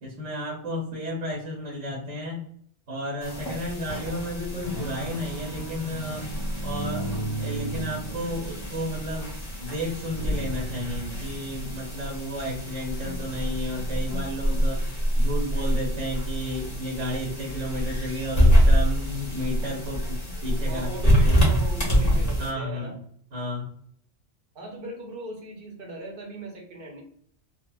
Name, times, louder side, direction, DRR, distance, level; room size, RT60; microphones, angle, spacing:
voice 1, 0.0-2.4 2.9-6.3 6.6-9.3 9.6-14.8 15.1-21.4 22.4-23.0 23.3-23.7, equal, 85° right, -3 dB, 1.3 m, -32 dB
sound 1, 3.2-22.5, equal, 35° left, 1.1 m, -26 dB
voice 2, 20.7-22.9 24.5-27.0, right 1 dB, 55° right, 1 dB, 0.8 m, -38 dB
3.7 x 2.0 x 2.3 m, 0.64 s
omnidirectional pair, 1.2 m